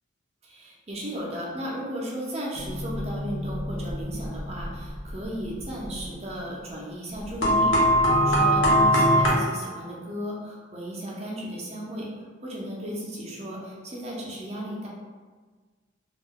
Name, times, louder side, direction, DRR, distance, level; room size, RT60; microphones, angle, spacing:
voice 1, 0.4-12.1 12.4-14.9, equal, 30° right, -3 dB, 0.5 m, -35 dB
sound 1, 2.6-5.1 5.6-5.7 6.0-6.1 7.4-9.3, equal, 75° left, 0.7 m, -22 dB
2.3 x 2.1 x 3.6 m, 1.4 s
head